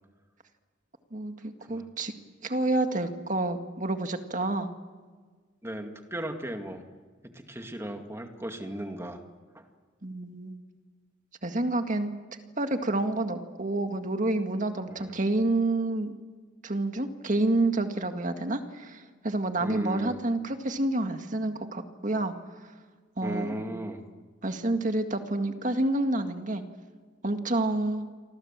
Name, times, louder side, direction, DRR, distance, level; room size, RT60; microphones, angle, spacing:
voice 1, 1.1-2.1 2.4-4.7 10.0-10.6 11.4-12.1 12.6-16.1 16.6-22.3 23.2-23.7 24.4-26.6 27.2-28.1, right 2 dB, 40° right, 6 dB, 1.9 m, -28 dB
voice 2, 5.6-6.8 7.3-9.2 14.9-15.1 19.6-20.2 23.2-24.0, right 1 dB, 15° right, 4 dB, 2.2 m, -36 dB
28.5 x 24.5 x 7.5 m, 1.5 s
head